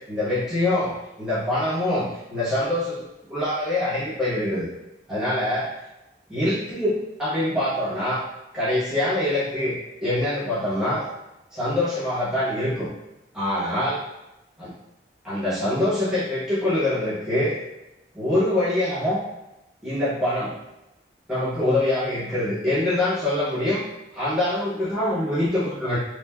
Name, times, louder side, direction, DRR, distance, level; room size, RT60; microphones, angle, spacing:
voice 1, 0.1-4.7 5.1-5.7 6.3-8.2 8.5-9.7 10.0-11.0 11.5-12.9 13.3-14.0 14.6-14.7 15.2-17.6 18.1-19.2 19.8-20.5 21.3-23.8 24.1-26.0, left 1 dB, 5° right, -13 dB, 0.9 m, -24 dB
3.2 x 2.0 x 2.2 m, 0.94 s
head